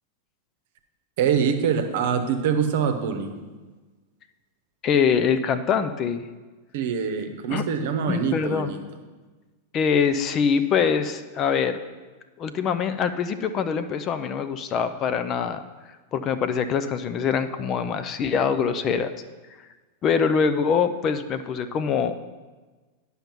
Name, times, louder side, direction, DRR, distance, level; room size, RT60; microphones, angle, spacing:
voice 1, 1.2-3.3 6.7-8.8, right 7 dB, 55° right, 7 dB, 0.9 m, -24 dB
voice 2, 4.8-6.3 7.5-7.6 8.1-8.8 9.7-11.8 12.4-15.6 16.1-19.1 20.0-22.3, left 6 dB, 30° left, 10 dB, 0.5 m, -24 dB
10.0 x 5.7 x 5.7 m, 1.3 s
figure-of-eight pair, 90°, 0 cm